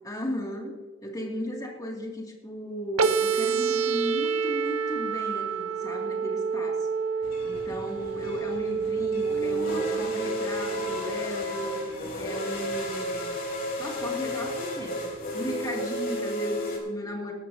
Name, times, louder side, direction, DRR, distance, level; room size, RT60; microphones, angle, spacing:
voice 1, 0.0-0.7 1.0-6.9 7.4-11.8 12.2-13.3 13.8-17.3, left 1 dB, 15° left, 0 dB, 2.2 m, -35 dB
sound 1, 3.0-11.0, right 5 dB, 80° right, 0.7 m, -28 dB
sound 2, 7.2-16.8, left 1 dB, 45° left, 3.4 m, -33 dB
18.0 x 12.0 x 2.7 m, 1.4 s
head